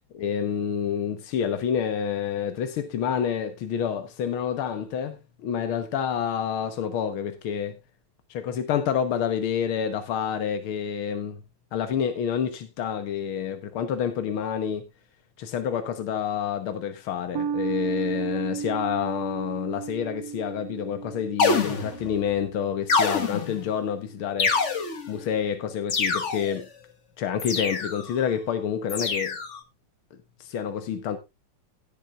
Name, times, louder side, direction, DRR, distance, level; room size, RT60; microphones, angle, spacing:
voice 1, 0.1-7.8 8.3-11.4 11.7-14.9 15.4-24.5 25.1-26.7 27.2-29.4 30.4-31.2, left 8 dB, 85° left, 2.0 m, -28 dB
sound 1, 17.3-24.1, right 7 dB, 65° right, 1.0 m, -34 dB
sound 2, 21.4-22.2 22.9-23.7 24.4-25.2 25.9-26.6 27.4-28.1 28.9-29.6, left 4 dB, 40° left, 1.6 m, -26 dB
17.0 x 9.1 x 2.4 m
omnidirectional pair, 2.3 m